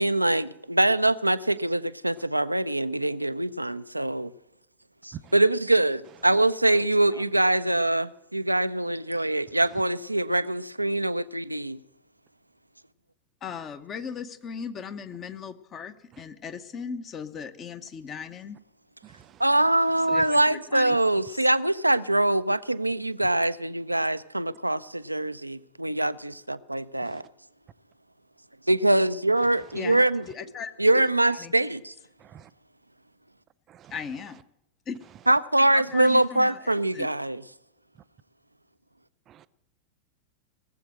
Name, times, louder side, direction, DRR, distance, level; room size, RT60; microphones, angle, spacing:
voice 1, 0.0-4.3 5.0-11.8 19.4-27.2 28.7-30.2 30.8-31.9 35.3-37.4, right 1 dB, 85° right, 0.5 m, -24 dB
voice 2, 6.7-7.2 13.4-18.6 20.1-21.0 29.7-31.5 33.9-34.4 34.9-35.0 35.7-37.1, left 6 dB, 30° left, 1.0 m, -38 dB
voice 3, 19.0-19.4 20.1-20.2 27.0-27.2 29.4-29.8 32.2-32.5 33.7-33.9 39.3-39.5, right 10 dB, 30° right, 0.5 m, -47 dB
19.0 x 7.7 x 7.5 m
figure-of-eight pair, 90°, 0 cm